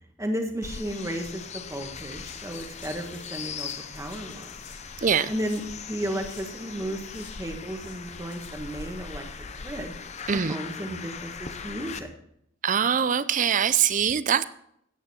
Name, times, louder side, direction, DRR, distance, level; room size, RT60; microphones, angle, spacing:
voice 1, 0.2-4.5 5.3-10.0 10.3-12.1, equal, 15° right, 4 dB, 1.5 m, -34 dB
sound 1, 0.6-12.0, left 6 dB, 35° left, 0.7 m, -40 dB
sound 2, 2.2-6.5 6.8-9.4 9.6-9.7, left 6 dB, 65° left, 5.0 m, -52 dB
voice 2, 12.6-14.4, right 8 dB, 40° right, 16 dB, 0.5 m, -23 dB
14.0 x 9.3 x 4.4 m, 0.72 s
head